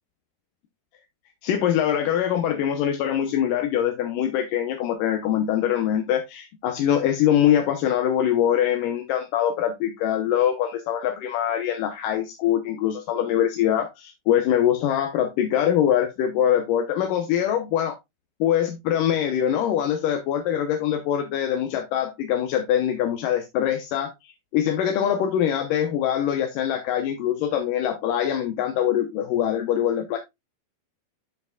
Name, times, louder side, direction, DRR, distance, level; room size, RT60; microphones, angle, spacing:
voice 1, 1.4-18.0 18.4-24.1 24.5-30.2, left 10 dB, 70° left, 2.3 m, -23 dB
12.0 x 5.8 x 2.4 m
omnidirectional pair, 4.4 m